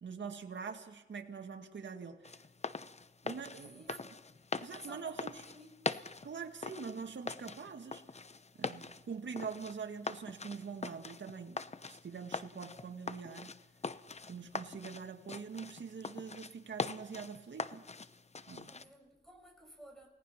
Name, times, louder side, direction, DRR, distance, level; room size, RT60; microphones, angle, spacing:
voice 1, 0.0-2.3 3.2-4.0 4.6-5.4 6.2-8.0 8.6-13.6 14.3-17.9 18.5-18.8, right 5 dB, 85° right, 1.9 m, -44 dB
sound 1, 2.2-18.8, left 4 dB, 35° left, 0.8 m, -43 dB
voice 2, 3.5-4.2 4.6-6.1 18.7-20.1, equal, ahead, 6.8 m, -55 dB
29.0 x 18.0 x 5.9 m
wide cardioid pair, 70°, 18 cm